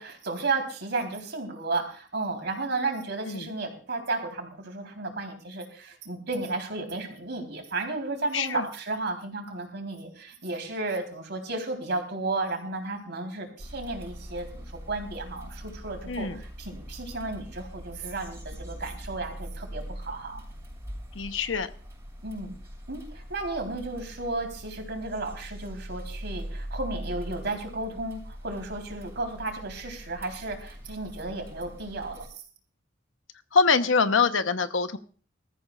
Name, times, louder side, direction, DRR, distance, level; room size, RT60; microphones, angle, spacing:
voice 1, 0.0-20.4 22.2-22.5 22.9-32.3, right 3 dB, 65° right, 3 dB, 3.9 m, -33 dB
voice 2, 8.3-8.7 16.1-16.4 21.2-21.7 33.5-35.0, left 5 dB, 90° left, 9 dB, 1.0 m, -24 dB
sound 1, 13.6-32.3, equal, 15° right, 7.2 m, -42 dB
21.5 x 14.0 x 2.5 m, 0.41 s
head